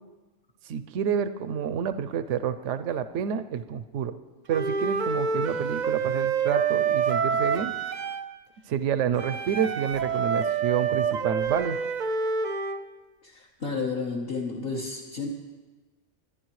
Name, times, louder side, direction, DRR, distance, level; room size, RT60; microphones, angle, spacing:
voice 1, 0.7-4.1 4.5-7.7 8.7-11.8, right 8 dB, 85° right, 11 dB, 0.9 m, -28 dB
Wind instrument woodwind instrument, 4.5-8.3 9.2-12.8, right 6 dB, 50° right, 0.6 m, -27 dB
sound 1, 4.7-6.2 7.1-8.0 9.5-9.6 9.9-10.8 11.4-11.9, right 1 dB, 85° left, 4.3 m, -53 dB
voice 2, 13.2-15.3, left 4 dB, 55° left, -3 dB, 1.4 m, -32 dB
21.5 x 11.0 x 3.1 m, 1.2 s
omnidirectional pair, 1.2 m